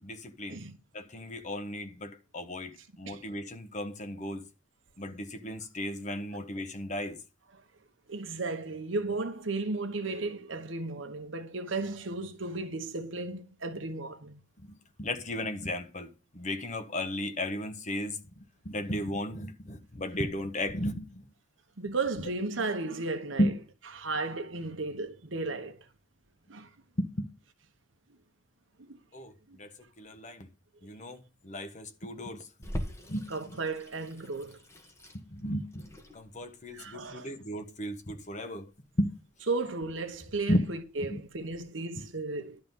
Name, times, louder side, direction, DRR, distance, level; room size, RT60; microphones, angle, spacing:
voice 1, 0.0-0.6 0.9-4.4 5.0-7.2 14.6-21.3 23.4-23.5 27.0-27.3 29.1-30.5 30.8-32.5 33.1-33.3 35.1-38.7 39.0-39.1 40.5-40.7 41.1-41.2, equal, 40° left, 1.3 m, -34 dB
voice 2, 8.1-14.4 21.8-23.5 23.9-25.9 26.5-26.7 28.8-29.0 29.5-29.6 33.3-34.6 36.7-37.3 39.5-42.6, right 3 dB, 85° right, 1.2 m, -34 dB
Water tap faucet / Sink (filling or washing), 32.6-41.6, equal, 15° left, 1.3 m, -44 dB
11.5 x 4.0 x 7.1 m
head